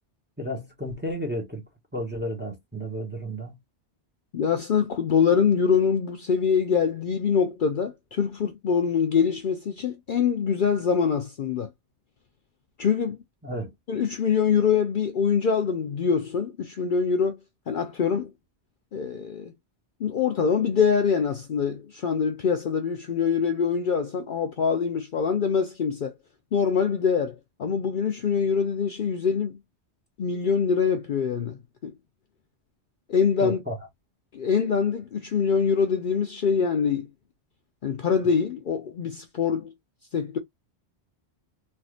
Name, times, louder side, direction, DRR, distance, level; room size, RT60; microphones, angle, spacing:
voice 1, 0.4-1.6 1.9-3.6 13.4-13.7 33.4-33.8, equal, 10° right, 1.0 m, -32 dB
voice 2, 4.3-11.7 12.8-13.2 13.9-17.4 17.7-18.3 18.9-19.5 20.0-26.1 26.5-29.6 30.2-31.9 33.1-33.6 34.3-37.1 37.8-39.7 40.1-40.4, left 6 dB, 55° left, 0.6 m, -24 dB
3.3 x 2.7 x 2.4 m
omnidirectional pair, 1.1 m